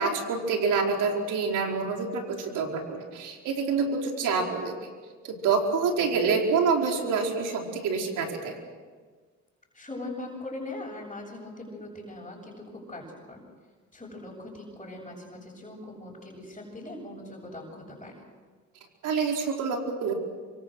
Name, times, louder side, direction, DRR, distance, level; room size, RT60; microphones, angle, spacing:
voice 1, 0.0-4.8 5.2-8.6 19.0-20.1, right 5 dB, 85° right, 1 dB, 4.8 m, -27 dB
voice 2, 9.7-13.4 13.9-18.1, left 2 dB, 20° left, -4 dB, 7.3 m, -40 dB
27.0 x 25.0 x 6.4 m, 1.5 s
cardioid pair, 90°, 30 cm